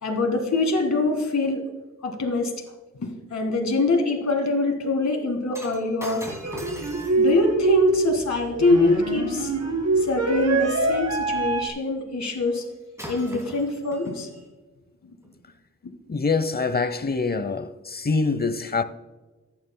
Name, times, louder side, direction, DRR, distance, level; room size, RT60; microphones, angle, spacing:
voice 1, 0.0-1.6 2.0-2.5 3.0-6.3 7.2-9.5 10.0-12.7 13.1-14.3 15.8-15.9, left 2 dB, 70° left, 1.9 m, -24 dB
Shatter, 5.5-9.9 12.5-12.7 13.0-14.5 15.2-15.4, equal, 10° right, 2.6 m, -41 dB
sound 1, 6.4-11.7, right 3 dB, 65° right, 2.0 m, -24 dB
voice 2, 16.1-18.8, left 4 dB, 35° left, 0.7 m, -25 dB
15.0 x 9.6 x 2.2 m
wide cardioid pair, 85°, 29 cm